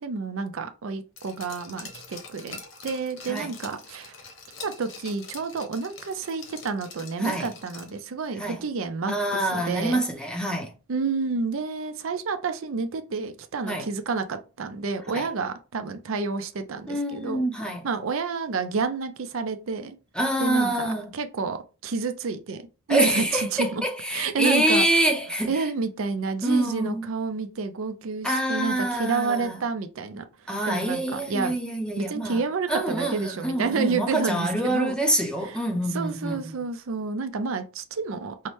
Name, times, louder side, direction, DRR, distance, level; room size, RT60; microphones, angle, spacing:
voice 1, 0.0-2.6 2.8-4.1 4.6-10.0 10.9-17.4 17.8-20.0 20.4-23.8 24.1-24.8 25.5-31.6 32.0-34.9 35.4-35.6 35.9-38.5, right 4 dB, 70° right, 0.5 m, -30 dB
Glass, 1.2-8.1 8.4-8.5, left 4 dB, 60° left, 1.0 m, -44 dB
voice 2, 9.1-10.7 13.7-13.9 15.1-15.3 16.9-17.9 20.1-21.1 22.9-25.5 26.4-27.1 28.2-29.6 30.5-32.4 32.7-36.6, right 1 dB, 5° left, 0.6 m, -26 dB
5.6 x 2.1 x 3.1 m
head